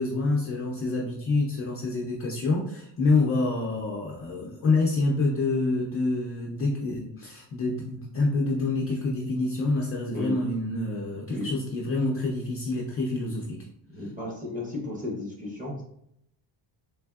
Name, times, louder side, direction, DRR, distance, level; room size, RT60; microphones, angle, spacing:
voice 1, 0.0-13.7, left 3 dB, 30° left, -3 dB, 0.4 m, -27 dB
voice 2, 13.9-15.8, left 1 dB, 15° right, -2 dB, 0.8 m, -34 dB
3.4 x 3.2 x 2.3 m, 0.76 s
cardioid pair, 160°, 48 cm